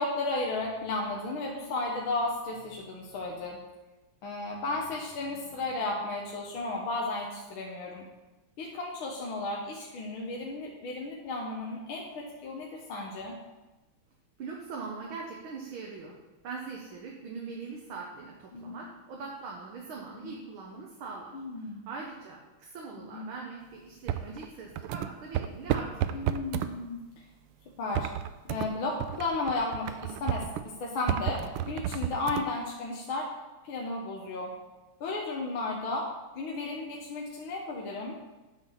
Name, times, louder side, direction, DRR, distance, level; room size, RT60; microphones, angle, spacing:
voice 1, 0.0-3.6 4.2-8.1 8.6-13.4 18.5-18.8 21.3-21.9 23.1-23.2 26.1-27.0 27.8-28.1 28.5-30.5 30.8-33.3 33.6-34.5 35.0-36.1 36.4-38.2, left 2 dB, 70° left, -1 dB, 1.9 m, -34 dB
voice 2, 14.4-16.2 16.4-26.3, right 4 dB, 70° right, -2 dB, 1.9 m, -42 dB
sound 1, 24.1-26.7 27.9-28.7 29.0-30.7 31.1-32.5, right 11 dB, 90° right, 1.5 m, -32 dB
9.2 x 6.3 x 5.7 m, 1.1 s
omnidirectional pair, 2.4 m